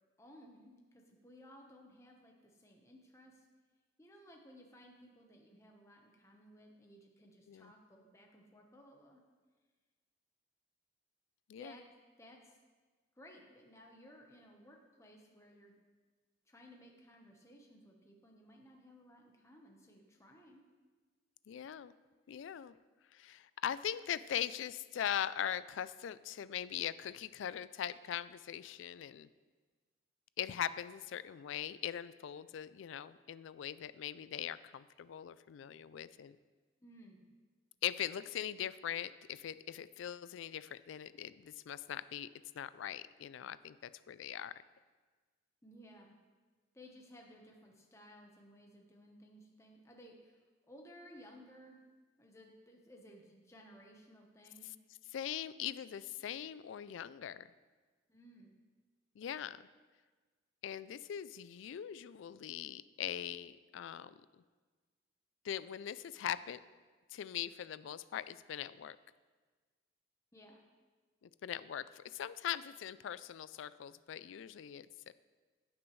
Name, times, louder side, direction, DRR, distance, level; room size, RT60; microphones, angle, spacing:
voice 1, 0.2-3.4 4.0-9.2 11.6-11.8 12.2-12.6 13.2-15.7 16.5-20.7 36.8-37.3 45.6-46.2 46.7-51.8 52.2-54.7 58.1-58.5 70.3-70.6, equal, 15° left, 1 dB, 1.0 m, -58 dB
voice 2, 21.5-21.9 22.3-22.8 23.1-29.3 30.4-36.4 37.8-42.3 42.6-44.5 55.1-57.5 59.2-59.6 60.6-64.2 65.4-66.6 67.1-69.0 71.4-75.1, left 10 dB, 70° left, 16 dB, 0.3 m, -41 dB
15.5 x 6.0 x 3.2 m, 1.4 s
head